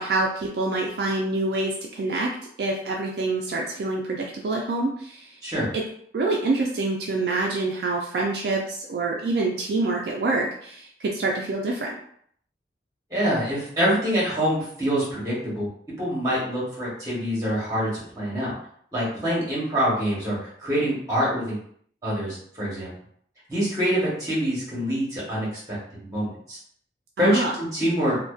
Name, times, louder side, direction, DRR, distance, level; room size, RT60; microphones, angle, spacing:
voice 1, 0.0-2.3 2.6-5.4 5.7-5.8 6.1-12.0 27.2-27.5, right 2 dB, 60° right, -1 dB, 0.3 m, -26 dB
voice 2, 13.1-15.7 16.0-18.5 18.9-21.6 22.0-22.9 23.5-26.6 27.2-28.2, equal, 20° right, -7 dB, 1.0 m, -25 dB
2.5 x 2.1 x 2.3 m, 0.64 s
head